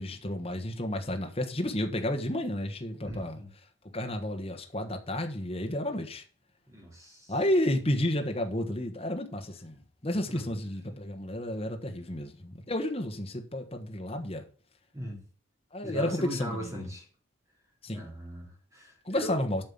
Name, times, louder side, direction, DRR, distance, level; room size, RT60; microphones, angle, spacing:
voice 1, 0.0-3.4 3.9-6.2 7.3-9.8 10.0-14.4 15.7-16.8 17.8-18.1 19.0-19.6, left 1 dB, 30° left, 1.2 m, -31 dB
voice 2, 3.0-3.5 6.7-7.3 10.3-10.4 14.9-15.2 15.8-17.0 17.9-19.3, equal, 15° right, 3.2 m, -39 dB
9.0 x 5.5 x 7.2 m
head